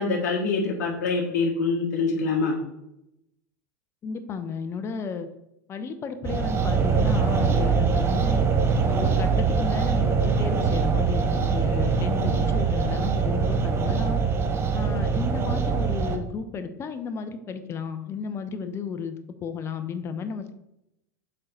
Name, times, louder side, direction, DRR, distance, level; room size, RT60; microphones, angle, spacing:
voice 1, 0.0-2.6, left 4 dB, 75° left, -1 dB, 1.2 m, -25 dB
voice 2, 4.0-5.3 5.7-8.4 8.8-14.2 14.7-20.5, left 5 dB, 30° left, 9 dB, 0.7 m, -33 dB
sound 1, 6.2-16.2, right 5 dB, 25° right, 0.8 m, -23 dB
6.6 x 3.9 x 4.3 m, 0.85 s
supercardioid pair, 115°, 9 cm